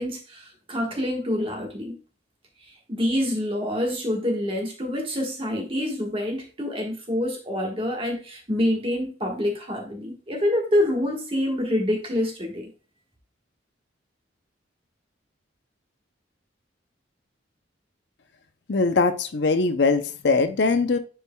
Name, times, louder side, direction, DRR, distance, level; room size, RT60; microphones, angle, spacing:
voice 1, 0.0-1.9 2.7-12.7, left 1 dB, 30° right, 1 dB, 1.4 m, -26 dB
voice 2, 18.7-21.0, left 4 dB, 60° left, 9 dB, 0.6 m, -21 dB
10.0 x 4.5 x 2.2 m, 0.35 s
head